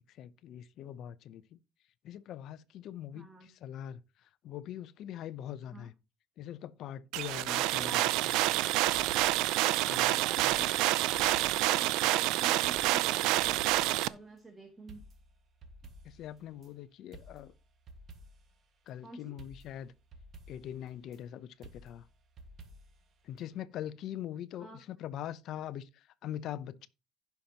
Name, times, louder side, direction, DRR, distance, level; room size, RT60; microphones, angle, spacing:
voice 1, 0.1-1.6 2.0-5.9 6.4-8.3 9.8-10.6 16.0-17.5 18.9-19.9 20.5-22.0 23.2-26.9, left 11 dB, 55° left, 0.6 m, -43 dB
voice 2, 3.1-3.5 5.7-5.9 7.4-8.1 9.8-15.0 19.0-19.4 24.6-24.8, right 2 dB, 15° right, 1.4 m, -49 dB
sound 1, 7.1-14.1, right 16 dB, 90° right, 0.5 m, -28 dB
sound 2, 8.9-9.6 10.4-12.2 12.6-14.1 14.4-14.5 14.9-16.7 17.1-18.6 18.9-19.0 19.4-21.2 21.6-23.1 23.4-23.5, right 2 dB, 40° right, 1.7 m, -53 dB
16.0 x 5.9 x 2.9 m
cardioid pair, 150°, 0 cm